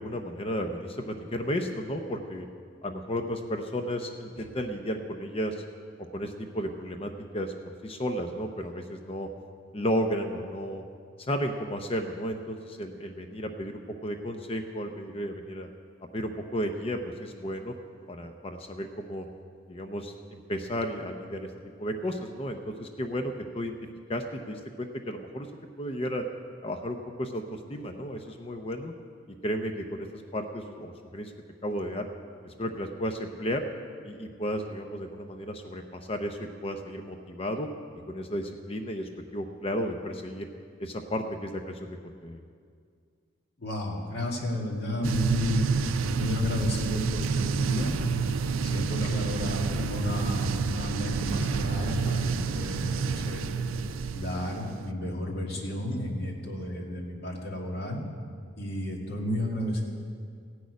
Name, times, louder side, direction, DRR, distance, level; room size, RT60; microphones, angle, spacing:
voice 1, 0.0-2.5 2.8-5.6 6.1-9.3 9.7-10.8 11.2-15.7 16.1-17.8 18.1-19.3 19.7-21.5 21.8-23.7 24.1-25.5 25.8-26.2 26.6-28.9 29.4-31.3 31.6-32.1 32.4-33.6 34.0-37.7 38.1-40.5 40.8-42.4 49.0-49.1, equal, 30° left, 5 dB, 0.6 m, -33 dB
voice 2, 43.6-45.6 46.2-47.9 48.6-53.5 54.1-58.0 58.6-59.8, left 1 dB, 55° left, -2 dB, 2.2 m, -32 dB
sound 1, 45.0-54.9, right 5 dB, 90° right, 0.5 m, -29 dB
15.5 x 6.4 x 9.3 m, 2.2 s
head